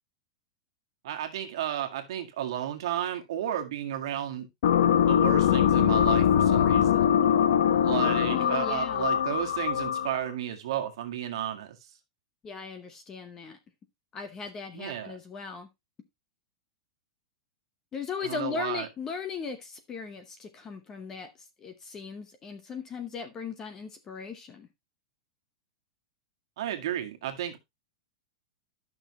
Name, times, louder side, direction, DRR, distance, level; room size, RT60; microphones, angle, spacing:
voice 1, 1.0-4.5 5.1-7.2 7.8-11.8 14.7-15.2 18.2-18.9 26.6-27.6, right 11 dB, 55° right, 1.8 m, -33 dB
sound 1, 4.6-10.3, left 9 dB, 65° left, 0.9 m, -23 dB
voice 2, 8.3-9.1 12.4-13.6 14.1-15.7 17.9-21.3 21.6-24.7, left 5 dB, 15° left, 0.9 m, -38 dB
12.0 x 6.2 x 2.9 m
supercardioid pair, 180°, 3 cm